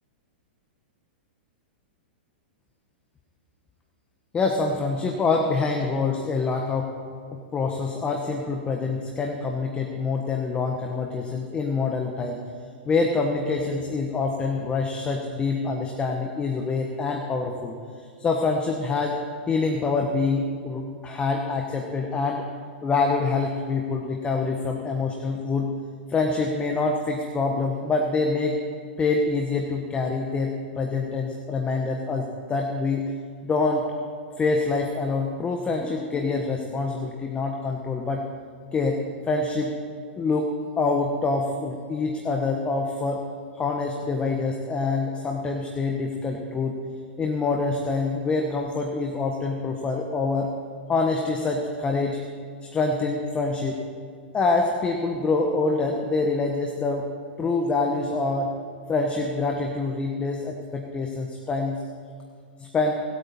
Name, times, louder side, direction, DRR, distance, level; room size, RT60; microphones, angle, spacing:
voice 1, 4.3-6.9 7.3-12.4 12.9-17.8 18.2-19.2 19.5-22.4 22.8-25.7 26.1-28.6 29.0-33.0 33.4-33.9 34.4-38.2 38.7-39.7 40.2-43.2 43.5-46.8 47.2-50.5 50.9-52.2 52.7-53.8 54.3-57.1 57.4-58.5 58.9-61.8 62.6-63.0, left 3 dB, 20° left, 3 dB, 1.2 m, -26 dB
22.5 x 8.4 x 4.2 m, 2.2 s
hypercardioid pair, 120°, 6 cm